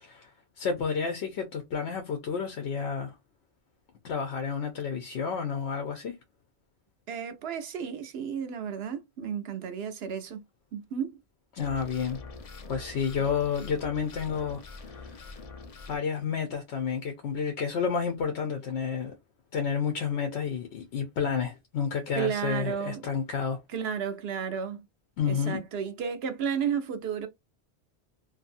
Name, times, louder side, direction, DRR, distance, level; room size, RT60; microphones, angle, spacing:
voice 1, 0.6-3.1 4.0-6.1 11.5-12.2 12.7-15.4 15.9-19.1 19.5-23.6 25.2-25.6, left 6 dB, 85° left, 0.9 m, -30 dB
voice 2, 7.1-10.4 10.7-11.2 22.1-23.0 23.7-24.8 25.3-27.3, right 7 dB, 70° right, 0.9 m, -32 dB
sound 1, 11.6-16.0, left 4 dB, 45° left, 0.5 m, -44 dB
2.6 x 2.6 x 2.5 m
omnidirectional pair, 1.1 m